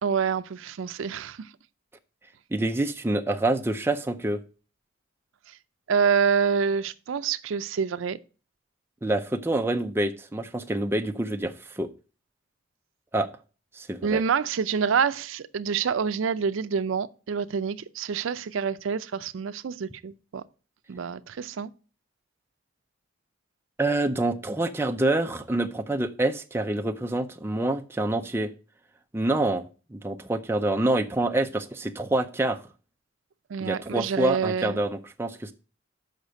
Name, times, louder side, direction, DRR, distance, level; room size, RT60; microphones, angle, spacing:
voice 1, 0.0-1.5 5.9-8.2 14.0-20.4 20.9-21.7 33.5-34.8, right 6 dB, 85° right, 0.4 m, -27 dB
voice 2, 2.5-4.4 9.0-11.9 13.1-13.3 13.7-14.2 23.8-28.5 29.1-29.6 29.9-32.6 33.6-35.5, right 2 dB, 10° right, 0.5 m, -26 dB
6.6 x 5.6 x 5.2 m
head